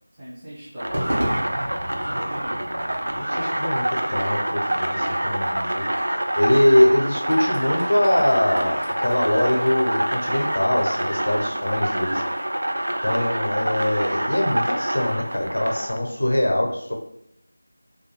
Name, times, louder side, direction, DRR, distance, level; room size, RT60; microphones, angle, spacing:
voice 1, 0.1-1.6 2.0-2.7 13.3-13.8, equal, 10° right, -13 dB, 0.5 m, -39 dB
sound 1, 0.8-16.0, right 1 dB, 80° right, 0.3 m, -26 dB
Crowd / Fireworks, 0.9-15.3, equal, 55° right, 0.9 m, -37 dB
voice 2, 2.9-5.9 6.4-12.2 13.0-16.9, left 1 dB, 65° left, 0 dB, 0.6 m, -22 dB
2.3 x 2.1 x 3.0 m, 0.75 s
figure-of-eight pair, 175°, 0 cm